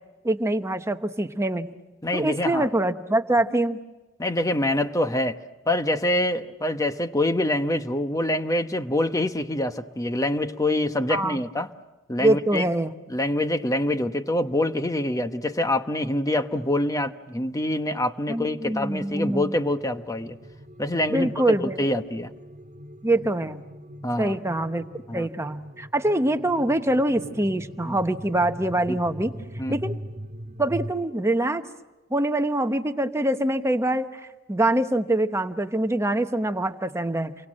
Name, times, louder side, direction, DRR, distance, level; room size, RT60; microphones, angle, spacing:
voice 1, 0.2-1.7 2.1-3.8 11.1-11.4 12.2-12.9 18.3-19.5 21.1-21.8 23.0-23.6 24.2-24.8 25.1-29.3 29.7-30.0 30.6-31.6 32.1-37.3, right 1 dB, 15° right, 8 dB, 1.0 m, -24 dB
voice 2, 2.0-2.7 4.2-5.4 5.7-11.7 12.1-12.6 13.1-20.4 20.8-21.3 21.6-22.3 24.0-24.4 25.1-25.3 27.9-28.0 28.9-29.0 29.6-29.8, left 1 dB, 15° left, 9 dB, 1.0 m, -25 dB
sound 1, 18.2-30.9, equal, 35° right, 2.0 m, -41 dB
29.0 x 24.0 x 7.6 m, 1.1 s
head